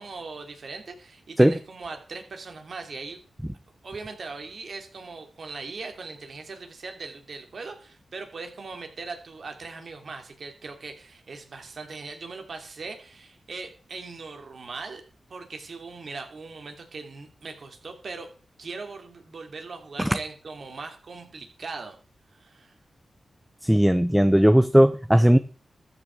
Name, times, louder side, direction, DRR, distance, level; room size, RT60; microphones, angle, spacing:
voice 1, 0.0-3.2 3.8-15.0 15.3-18.3 18.6-22.0 22.3-22.7, right 4 dB, 65° right, 5 dB, 3.1 m, -39 dB
voice 2, 23.6-25.4, equal, 5° right, 11 dB, 0.9 m, -17 dB
13.5 x 6.0 x 7.9 m, 0.39 s
supercardioid pair, 40°, 0 cm